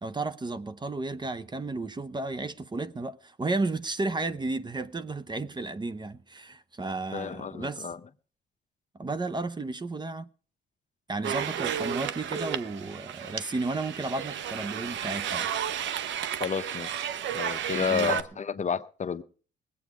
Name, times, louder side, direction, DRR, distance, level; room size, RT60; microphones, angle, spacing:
voice 1, 0.0-7.9 8.9-10.3 11.1-15.5 17.9-18.2, right 3 dB, 20° right, 0.7 m, -33 dB
voice 2, 7.1-8.0 16.4-16.9 17.3-19.2, left 6 dB, 35° left, 0.7 m, -30 dB
sound 1, 11.2-18.2, right 9 dB, 70° right, 0.8 m, -32 dB
19.5 x 8.5 x 4.9 m
cardioid pair, 90°, 20 cm